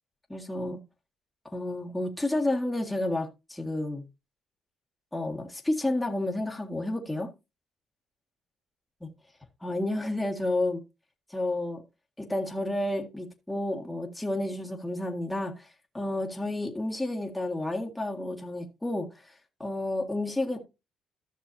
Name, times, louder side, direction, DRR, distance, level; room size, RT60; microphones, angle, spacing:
voice 1, 0.3-0.8 1.5-4.0 5.1-7.3 9.0-9.1 9.6-10.8 11.3-11.8 12.2-15.7 15.9-19.3 19.6-20.6, left 1 dB, 10° left, 1.8 m, -31 dB
14.5 x 6.1 x 2.7 m
cardioid pair, 90°, 0 cm